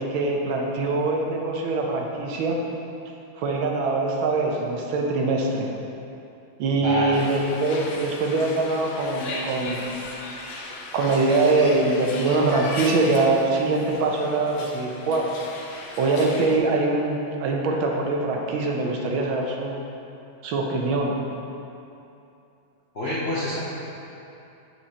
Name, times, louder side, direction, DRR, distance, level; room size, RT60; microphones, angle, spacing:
voice 1, 0.0-2.6 3.4-5.7 6.6-9.8 10.4-10.6 10.9-15.4 16.0-19.8 20.4-21.2, right 3 dB, 85° right, 0 dB, 1.6 m, -23 dB
voice 2, 6.8-7.3 22.9-23.6, left 1 dB, 55° left, -8 dB, 0.7 m, -26 dB
sound 1, 7.1-16.6, left 2 dB, 80° left, 1.5 m, -37 dB
7.3 x 6.5 x 2.8 m, 2.8 s
omnidirectional pair, 2.1 m